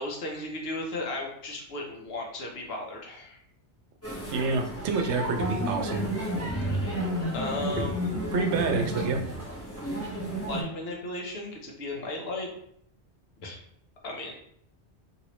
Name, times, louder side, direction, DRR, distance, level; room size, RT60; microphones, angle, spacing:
voice 1, 0.0-3.4 7.3-8.1 10.3-12.5 13.4-13.6 14.0-14.3, left 2 dB, 65° left, 0 dB, 1.0 m, -35 dB
sound 1, 4.0-10.6, equal, 15° left, 1.2 m, -31 dB
voice 2, 4.3-6.0 7.7-7.8 8.3-9.2, right 4 dB, 85° right, 4 dB, 0.9 m, -27 dB
3.0 x 2.9 x 3.0 m, 0.68 s
omnidirectional pair, 1.1 m